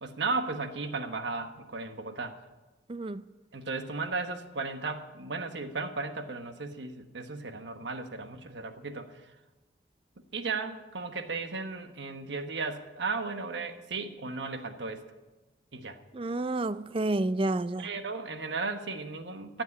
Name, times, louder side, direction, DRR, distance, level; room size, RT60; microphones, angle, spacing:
voice 1, 0.0-2.4 3.5-9.1 10.3-15.1 15.7-16.0 17.8-19.6, right 4 dB, 70° right, 1.2 m, -35 dB
voice 2, 2.9-3.2 16.1-17.9, right 2 dB, 30° right, 0.4 m, -30 dB
15.5 x 7.4 x 9.7 m
head